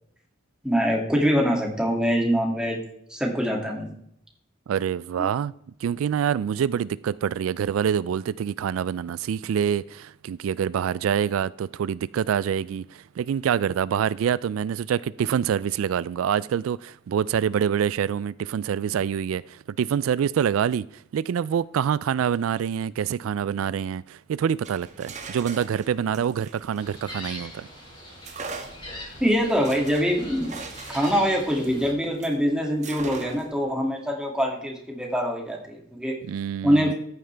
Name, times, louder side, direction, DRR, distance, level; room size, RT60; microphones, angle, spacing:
voice 1, 0.6-2.8 3.1-3.9 29.2-30.5 30.9-36.1 36.6-36.9, equal, 5° right, 2.3 m, -24 dB
voice 2, 4.7-5.5 5.8-20.9 21.1-27.7 36.2-36.9, right 8 dB, 85° right, 0.3 m, -26 dB
sound 1, 24.5-27.6 28.2-32.4 32.8-33.6, right 4 dB, 35° right, 1.3 m, -41 dB
Gull seagull, 26.8-31.9, left 1 dB, 25° left, 5.1 m, -42 dB
13.5 x 9.4 x 3.4 m
head